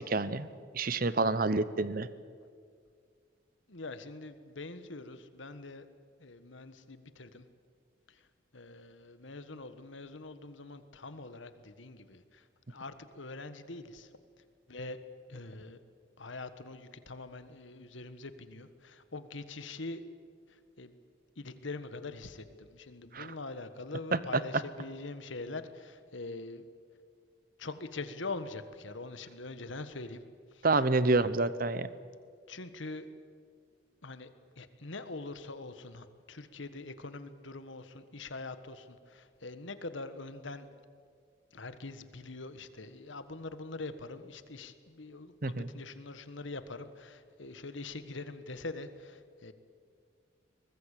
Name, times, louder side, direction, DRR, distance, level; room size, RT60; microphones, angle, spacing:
voice 1, 0.1-0.5 0.7-2.1 23.1-23.3 24.1-24.4 30.6-31.9 45.4-45.7, right 3 dB, 45° right, 15 dB, 0.9 m, -28 dB
voice 2, 3.7-5.9 6.2-7.4 8.1-8.2 8.5-14.1 14.7-15.0 15.3-15.8 16.2-20.0 20.8-20.9 21.4-26.6 27.6-30.2 30.5-30.8 31.1-31.3 32.5-33.1 34.0-34.3 34.6-40.7 41.5-49.5, left 3 dB, 75° left, 11 dB, 1.5 m, -43 dB
23.5 x 20.5 x 8.5 m, 2.1 s
head